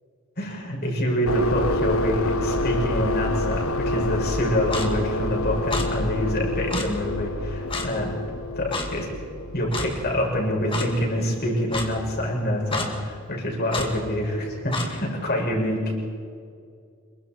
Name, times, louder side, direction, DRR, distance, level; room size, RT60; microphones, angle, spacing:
voice 1, 0.4-8.2 8.6-9.1 9.5-15.8, equal, 50° left, -1 dB, 6.3 m, -26 dB
sound 1, 1.3-10.7, left 1 dB, 75° left, 0.9 m, -28 dB
Clock, 4.7-4.9 5.7-5.9 6.7-6.9 7.7-7.9 8.7-8.9 9.7-9.9 10.7-10.9 11.7-11.9 12.7-12.9 13.7-13.9 14.7-14.9, left 3 dB, 25° left, 2.3 m, -28 dB
26.5 x 23.0 x 4.5 m, 2.3 s
head